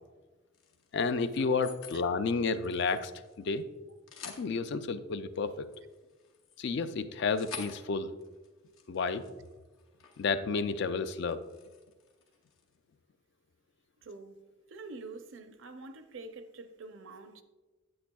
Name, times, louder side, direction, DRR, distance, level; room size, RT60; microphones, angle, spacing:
sound 1, 0.5-2.0 2.4-3.6 3.9-4.5 5.3-10.3 10.7-10.9 11.2-12.8, left 6 dB, 75° left, 0.8 m, -50 dB
voice 1, 0.9-3.1 3.4-3.7 4.2-5.7 6.6-8.1 8.9-9.2 10.2-11.4, left 4 dB, 55° left, 0.4 m, -31 dB
voice 2, 14.0-14.4 14.7-17.4, right 3 dB, 65° right, 0.5 m, -46 dB
8.6 x 8.3 x 2.3 m
head